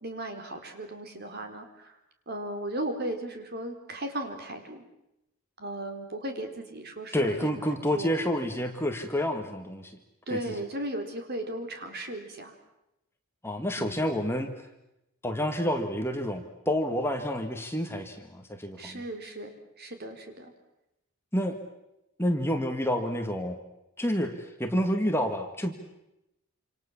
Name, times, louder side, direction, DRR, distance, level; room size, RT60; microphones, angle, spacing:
voice 1, 0.0-2.0 2.3-4.8 5.6-8.1 10.3-12.5 13.8-14.0 18.8-19.5 19.8-20.5, right 1 dB, 45° right, 5 dB, 4.1 m, -36 dB
voice 2, 7.1-10.0 13.4-14.5 15.2-19.0 21.3-21.6 22.2-23.6 24.0-25.7, equal, 10° left, 5 dB, 2.0 m, -29 dB
27.5 x 27.5 x 7.3 m, 0.89 s
head